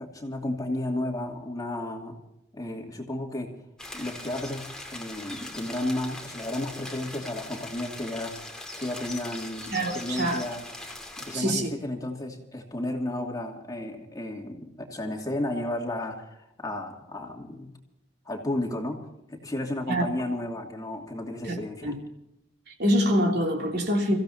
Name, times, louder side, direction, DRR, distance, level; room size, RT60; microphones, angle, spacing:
voice 1, 0.0-2.2 2.5-3.5 3.9-8.4 8.8-10.6 11.2-17.7 18.2-21.9, left 1 dB, 20° left, 2.6 m, -33 dB
sound 1, 3.8-11.4, left 1 dB, 5° left, 2.4 m, -40 dB
voice 2, 9.7-10.4 11.3-11.7 19.9-20.1 21.4-21.6 21.8-22.0 22.7-24.2, equal, 60° right, 3.3 m, -25 dB
29.5 x 15.5 x 2.8 m
head